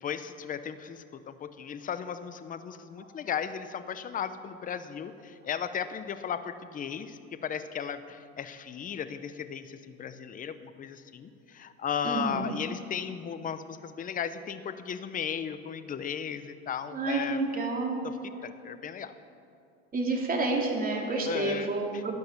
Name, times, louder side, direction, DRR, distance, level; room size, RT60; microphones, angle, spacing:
voice 1, 0.0-17.6 18.0-18.2 18.4-19.1 21.2-22.0, left 7 dB, 20° left, 11 dB, 0.8 m, -36 dB
voice 2, 12.0-12.5 16.9-18.0 19.9-22.2, right 3 dB, 20° right, 0 dB, 3.0 m, -29 dB
13.0 x 10.5 x 9.2 m, 2.5 s
supercardioid pair, 115°, 40 cm